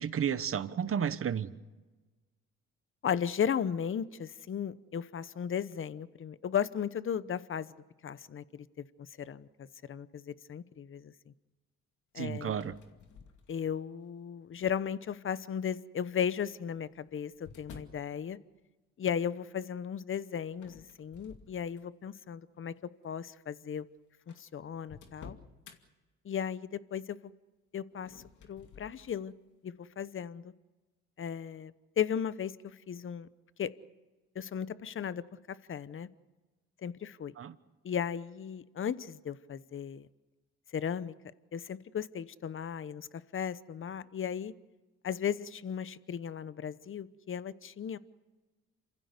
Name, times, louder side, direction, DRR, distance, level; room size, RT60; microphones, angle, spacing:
voice 1, 0.0-1.5 12.2-12.8 37.4-37.5, right 8 dB, 45° right, 13 dB, 1.2 m, -32 dB
voice 2, 3.0-7.7 8.0-8.9 9.2-9.5 9.8-11.3 12.1-12.5 13.5-18.4 19.0-22.7 23.0-23.8 24.3-25.4 26.2-27.2 27.7-28.2 28.5-29.3 29.6-30.5 31.2-33.3 33.6-33.7 34.3-36.1 36.8-37.3 37.8-40.1 40.7-41.1 41.5-43.1 43.3-44.5 45.0-48.0, left 8 dB, 45° left, 16 dB, 0.9 m, -36 dB
sound 1, 12.5-13.9 14.6-15.0 16.1-18.1 20.5-22.1 22.6-22.8 23.6-23.7 23.8-23.9 24.3-25.8 27.9-29.2, left 6 dB, 75° left, 2.5 m, -53 dB
28.0 x 15.5 x 8.2 m, 1.2 s
cardioid pair, 90°, 30 cm